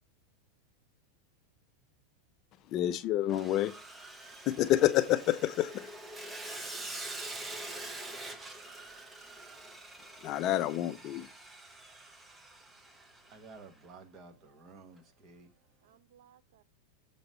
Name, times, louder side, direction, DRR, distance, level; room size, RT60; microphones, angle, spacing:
voice 1, 2.7-3.7 4.5-5.9 10.2-11.3, left 13 dB, 35° left, 0.5 m, -28 dB
Sawing, 3.3-13.5, right 2 dB, 10° right, 0.7 m, -45 dB
voice 2, 7.4-8.9 9.3-9.5 15.8-16.6, right 9 dB, 75° right, 0.5 m, -64 dB
voice 3, 13.3-15.5, right 4 dB, 30° right, 1.0 m, -52 dB
6.8 x 3.1 x 5.3 m
supercardioid pair, 160°, 0 cm